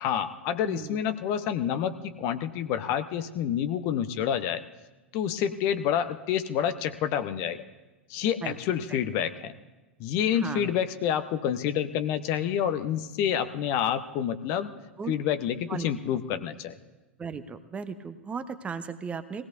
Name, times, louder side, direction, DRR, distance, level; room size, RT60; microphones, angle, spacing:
voice 1, 0.0-4.6 5.1-7.6 8.1-9.5 10.0-14.7 15.1-16.8, left 9 dB, 45° left, 10 dB, 0.8 m, -28 dB
voice 2, 0.7-1.0 8.4-8.6 8.9-9.0 10.3-10.7 15.0-15.1 15.7-15.9 17.2-19.5, right 6 dB, 20° right, 11 dB, 0.8 m, -36 dB
22.5 x 17.0 x 2.6 m, 1.1 s
figure-of-eight pair, 85°, 6 cm